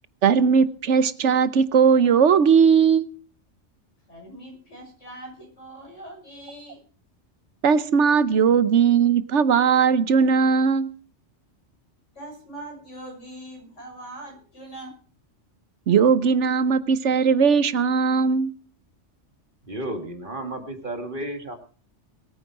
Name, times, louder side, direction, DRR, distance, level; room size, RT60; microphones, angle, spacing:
voice 1, 0.2-3.1 7.6-10.9 15.9-18.5, right 6 dB, 75° right, 15 dB, 1.2 m, -18 dB
voice 2, 4.1-6.8 12.1-14.9, right 1 dB, 80° left, 1 dB, 6.7 m, -41 dB
voice 3, 19.7-21.5, right 1 dB, 45° right, 5 dB, 2.4 m, -32 dB
22.0 x 9.3 x 4.8 m, 0.41 s
omnidirectional pair, 1.2 m